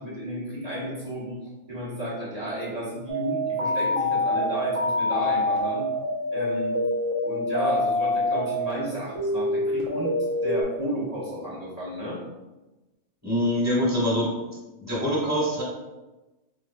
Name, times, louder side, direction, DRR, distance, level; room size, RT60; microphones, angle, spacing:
voice 1, 0.0-1.4 1.7-5.8 6.3-6.8 7.2-10.1 10.4-12.2, equal, 35° right, -7 dB, 1.0 m, -32 dB
sound 1, 3.1-8.7 9.2-10.6, left 1 dB, 70° right, 1.1 m, -26 dB
voice 2, 13.2-14.3 14.8-15.6, equal, 15° right, -8 dB, 1.4 m, -24 dB
4.0 x 3.2 x 2.2 m, 1.1 s
omnidirectional pair, 1.4 m